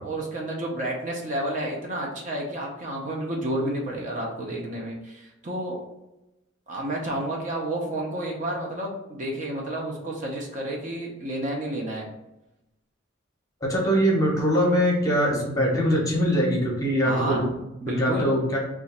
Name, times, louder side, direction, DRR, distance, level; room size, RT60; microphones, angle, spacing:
voice 1, 0.0-5.8 6.7-12.1 17.0-18.3, right 1 dB, 40° right, -2 dB, 0.6 m, -30 dB
voice 2, 13.6-17.4 17.9-18.6, equal, 15° left, -3 dB, 0.8 m, -22 dB
3.0 x 2.4 x 4.2 m, 0.92 s
head